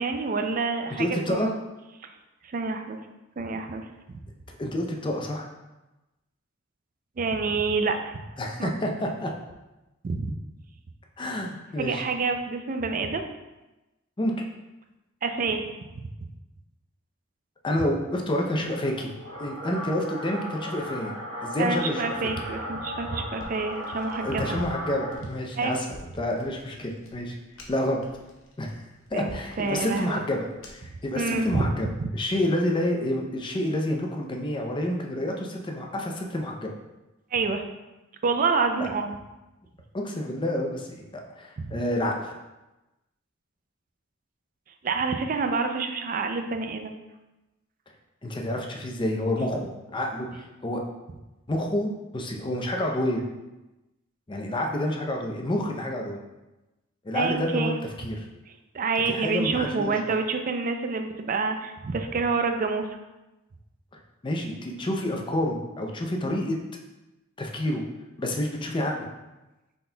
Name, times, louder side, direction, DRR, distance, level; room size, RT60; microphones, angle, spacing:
voice 1, 0.0-1.6 2.4-3.0 3.4-4.2 7.2-8.2 8.6-8.7 10.0-10.3 11.8-13.2 15.2-15.7 21.6-24.6 25.6-25.8 29.1-30.2 31.1-31.7 32.0-32.1 37.3-37.6 38.2-39.2 41.6-41.7 44.8-46.9 57.1-57.8 58.7-62.9, right 4 dB, 40° right, 6 dB, 0.4 m, -27 dB
voice 2, 1.0-1.5 4.5-5.5 8.4-9.3 11.2-12.0 14.2-14.3 17.6-19.1 19.4-21.1 21.4-22.1 24.2-27.4 27.7-28.0 28.6-28.7 29.1-30.5 30.7-31.9 32.1-36.7 39.9-42.3 48.2-50.8 51.5-53.2 54.3-56.2 57.0-57.7 58.0-58.2 59.1-60.0 64.2-66.6 67.4-67.8 68.2-69.1, left 1 dB, 25° left, 1 dB, 0.5 m, -28 dB
sound 1, 18.4-25.2, equal, 80° right, 1.2 m, -36 dB
sound 2, 23.3-31.0, left 1 dB, 85° left, 0.8 m, -48 dB
5.7 x 4.1 x 2.2 m, 1.0 s
head